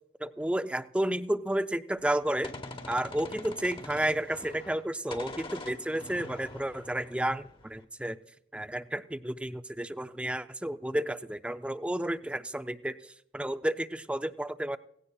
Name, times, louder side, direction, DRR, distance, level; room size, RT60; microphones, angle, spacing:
voice 1, 0.2-2.5 2.9-8.2 8.5-14.8, right 1 dB, 5° right, 12 dB, 0.3 m, -31 dB
Gunshot gunfire, 2.0-4.9 5.1-7.8, left 2 dB, 25° left, 1.0 m, -44 dB
17.0 x 16.5 x 2.3 m, 0.77 s
head